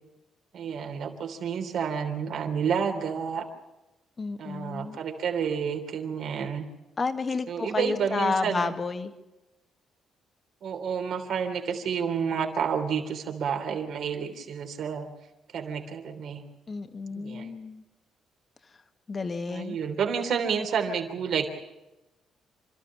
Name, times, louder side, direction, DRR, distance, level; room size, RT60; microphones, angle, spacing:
voice 1, 0.5-3.5 4.4-6.6 7.5-8.7 10.6-15.1 15.5-16.4 17.1-17.5 19.5-21.5, right 7 dB, 70° right, 4 dB, 3.2 m, -30 dB
voice 2, 4.2-5.0 7.0-9.1 16.7-17.8 19.1-19.8, left 4 dB, 35° left, 8 dB, 1.7 m, -31 dB
28.0 x 13.0 x 8.6 m, 1.0 s
cardioid pair, 90°, 0 cm